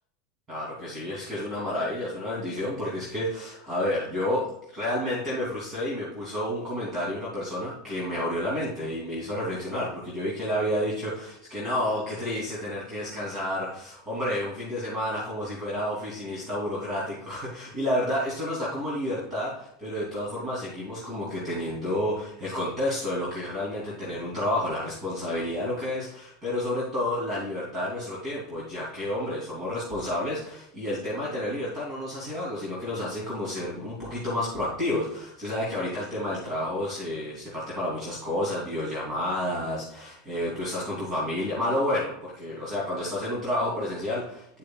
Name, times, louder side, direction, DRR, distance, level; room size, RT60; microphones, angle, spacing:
voice 1, 0.5-44.6, left 1 dB, 20° right, -7 dB, 3.1 m, -30 dB
10.0 x 6.6 x 2.4 m, 0.76 s
supercardioid pair, 140°, 0 cm